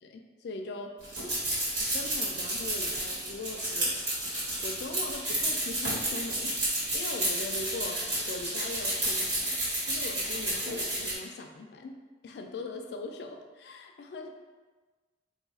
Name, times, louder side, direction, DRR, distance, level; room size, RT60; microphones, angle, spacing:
voice 1, 0.0-1.0 1.9-4.0 4.6-9.6 9.8-12.0 12.2-14.3, left 2 dB, 60° left, 4 dB, 0.3 m, -40 dB
sound 1, 1.0-11.1, right 1 dB, 75° right, 1.4 m, -31 dB
2.6 x 2.3 x 4.0 m, 1.3 s
head